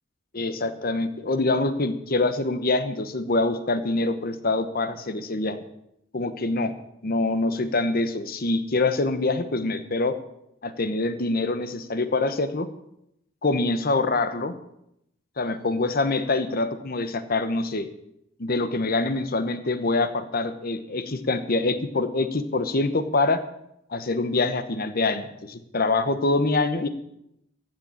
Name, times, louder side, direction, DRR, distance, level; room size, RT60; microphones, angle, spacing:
voice 1, 0.3-5.6 6.1-6.7 7.0-10.1 10.6-12.7 13.4-14.5 15.4-17.9 18.4-23.4 23.9-26.9, left 2 dB, 50° left, 11 dB, 1.0 m, -25 dB
15.0 x 6.8 x 8.7 m, 0.80 s
head